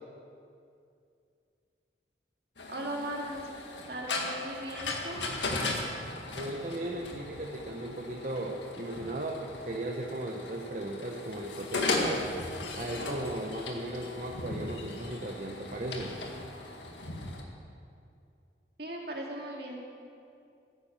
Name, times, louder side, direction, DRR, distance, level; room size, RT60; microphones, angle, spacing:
sound 1, 2.6-17.4, left 2 dB, 80° left, 1.9 m, -37 dB
voice 1, 2.7-3.5 3.9-5.2 18.8-19.8, right 1 dB, 60° right, -1 dB, 2.4 m, -38 dB
voice 2, 6.3-12.3 12.8-16.2, right 1 dB, 45° right, 0 dB, 1.0 m, -36 dB
15.5 x 9.6 x 7.5 m, 2.5 s
head